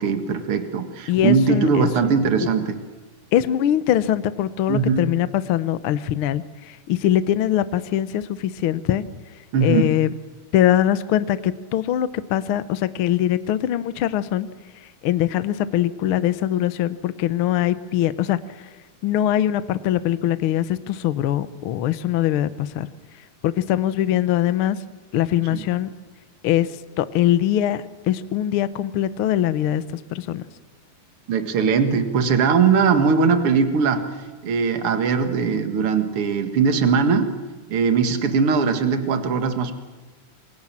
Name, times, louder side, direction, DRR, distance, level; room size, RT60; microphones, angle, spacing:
voice 1, 0.0-2.8 4.7-5.2 9.5-9.9 25.5-25.7 31.3-37.3 37.7-39.7, right 5 dB, 50° right, 8 dB, 2.4 m, -20 dB
voice 2, 1.1-1.9 3.3-9.0 9.6-10.1 10.5-14.5 15.0-18.4 19.0-22.9 23.4-24.8 25.1-25.9 26.4-26.7 27.0-30.4, left 12 dB, 85° left, 13 dB, 1.2 m, -22 dB
27.5 x 23.0 x 7.5 m, 1.3 s
omnidirectional pair, 3.8 m